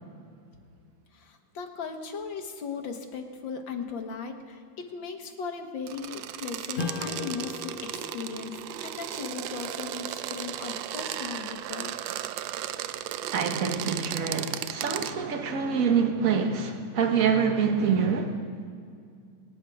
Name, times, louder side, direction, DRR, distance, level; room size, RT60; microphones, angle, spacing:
voice 1, 1.1-12.0, left 5 dB, 65° left, 2.0 m, -37 dB
sound 1, 5.9-15.1, right 12 dB, 75° right, 1.2 m, -35 dB
Strum, 6.7-11.7, left 4 dB, 35° left, 0.8 m, -40 dB
voice 2, 13.3-18.4, right 6 dB, 45° right, 1.5 m, -26 dB
25.5 x 9.2 x 4.9 m
omnidirectional pair, 2.3 m